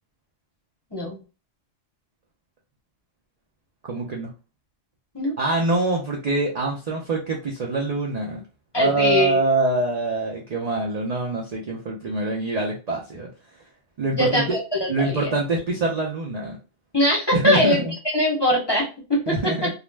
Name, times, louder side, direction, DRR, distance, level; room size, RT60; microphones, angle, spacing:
voice 1, 3.8-4.3 5.4-8.4 8.8-13.3 14.0-14.6 14.9-16.6 17.3-17.9 19.3-19.7, right 2 dB, 55° right, -1 dB, 0.4 m, -24 dB
voice 2, 8.7-9.4 14.1-15.3 16.9-17.8 18.1-19.7, left 1 dB, 25° left, -3 dB, 0.7 m, -22 dB
2.4 x 2.0 x 3.2 m, 0.32 s
omnidirectional pair, 1.3 m